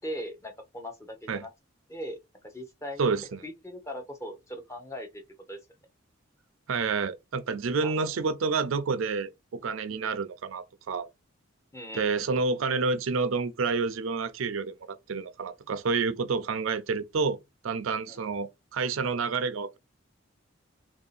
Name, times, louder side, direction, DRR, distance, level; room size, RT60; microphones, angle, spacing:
voice 1, 0.0-1.5 1.9-2.2 2.4-3.2 3.4-5.2 5.5-5.6 7.8-8.1 9.9-10.2 11.7-12.4 18.1-18.4, equal, 15° left, 0.6 m, -40 dB
voice 2, 3.0-3.4 6.7-11.1 12.0-17.4 17.6-19.8, right 4 dB, 80° right, 0.5 m, -29 dB
3.0 x 2.7 x 4.0 m
head